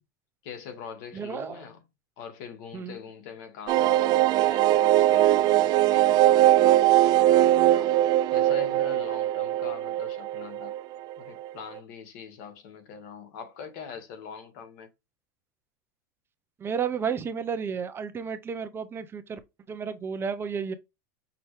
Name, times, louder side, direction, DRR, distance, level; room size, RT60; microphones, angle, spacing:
voice 1, 0.4-1.8 2.2-7.9 8.3-10.7 11.2-14.9, left 6 dB, 65° left, 1.8 m, -43 dB
voice 2, 1.1-1.6 2.7-3.0 16.6-19.4 19.7-20.7, right 6 dB, 20° right, 0.8 m, -32 dB
sound 1, 3.7-11.1 11.4-11.5 11.8-11.9, right 14 dB, 40° right, 0.3 m, -21 dB
6.0 x 2.7 x 3.3 m
supercardioid pair, 125°, 10 cm